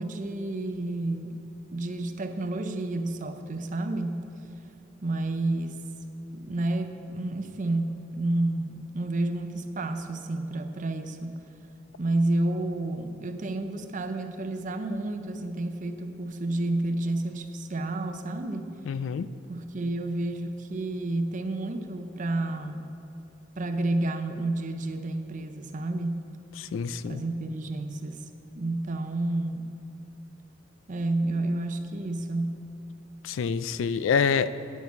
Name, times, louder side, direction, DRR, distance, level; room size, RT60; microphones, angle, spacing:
voice 1, 0.0-1.3 1.7-4.3 5.0-5.8 6.3-11.5 12.0-18.7 19.5-22.9 23.6-26.3 27.0-28.2 28.6-29.7 30.9-32.6, right 2 dB, 40° right, 7 dB, 0.6 m, -30 dB
voice 2, 18.9-19.3 26.6-27.2 33.2-34.7, left 6 dB, 75° left, 15 dB, 0.3 m, -27 dB
9.4 x 5.9 x 8.2 m, 2.7 s
head